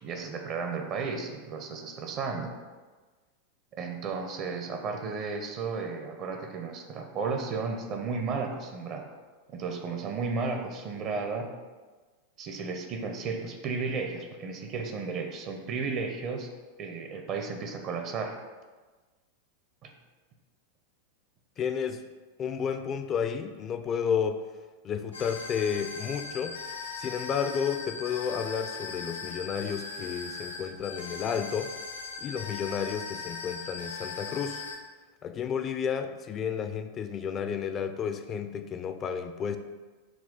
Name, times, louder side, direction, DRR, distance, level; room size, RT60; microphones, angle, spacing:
voice 1, 0.0-2.6 3.8-9.1 9.5-11.5 12.4-16.5 16.8-18.4 19.8-19.9, right 4 dB, 35° right, 4 dB, 0.5 m, -33 dB
voice 2, 21.6-22.0 22.4-24.4 24.8-26.6 26.9-31.7 32.2-34.6 35.2-39.6, left 7 dB, 30° left, 8 dB, 0.3 m, -31 dB
sound 1, 25.1-34.8, left 4 dB, 75° left, 0.6 m, -39 dB
5.9 x 2.3 x 3.6 m, 1.3 s
figure-of-eight pair, 90°, 0 cm